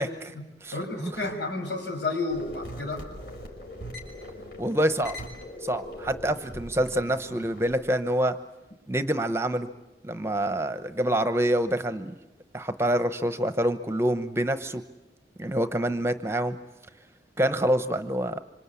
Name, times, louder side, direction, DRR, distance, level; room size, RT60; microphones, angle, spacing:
voice 1, 0.0-0.3 0.6-0.7 1.0-1.1 4.6-5.2 5.6-8.3 8.9-9.7 10.0-12.1 12.5-14.8 15.4-16.6 17.4-18.4, right 1 dB, 15° right, 10 dB, 0.9 m, -26 dB
voice 2, 0.7-3.0, left 3 dB, 85° left, 3 dB, 6.3 m, -31 dB
sound 1, 2.3-7.7, left 1 dB, 65° left, 5.9 m, -41 dB
27.0 x 25.5 x 8.4 m, 1.0 s
head